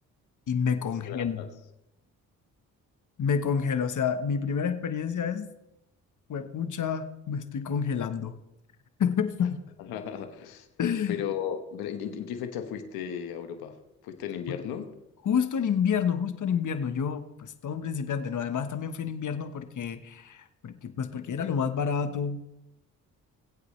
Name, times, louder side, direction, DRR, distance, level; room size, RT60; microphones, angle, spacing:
voice 1, 0.5-1.4 3.2-5.5 6.3-8.3 9.0-9.6 10.8-11.2 14.5-14.6 15.2-22.5, left 7 dB, 55° left, 9 dB, 1.2 m, -29 dB
voice 2, 1.0-1.5 9.8-10.7 11.1-13.8 14.0-14.9, left 9 dB, 90° left, 7 dB, 1.2 m, -35 dB
21.5 x 8.2 x 3.2 m, 0.89 s
supercardioid pair, 60°, 36 cm